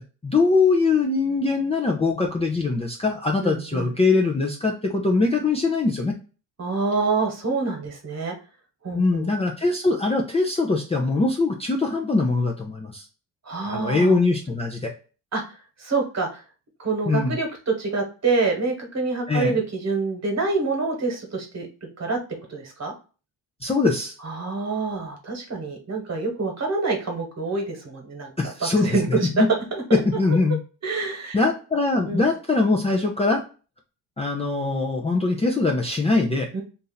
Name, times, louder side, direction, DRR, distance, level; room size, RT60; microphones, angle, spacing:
voice 1, 0.0-6.1 8.9-13.1 13.6-14.9 17.1-17.3 19.3-19.6 23.6-24.1 28.4-29.5 29.9-30.6 31.3-33.4 34.2-36.5, left 3 dB, 15° left, 0 dB, 0.5 m, -22 dB
voice 2, 3.4-3.9 6.6-8.3 8.8-9.3 13.4-14.2 15.3-15.5 15.8-16.4 16.8-21.7 22.0-22.2 22.5-22.9 24.2-28.3 28.6-29.4 29.7-30.0 30.8-31.4 32.1-32.2 36.5-36.6, right 3 dB, 40° right, 2 dB, 1.4 m, -26 dB
2.7 x 2.6 x 3.9 m, 0.35 s
cardioid pair, 95°, 42 cm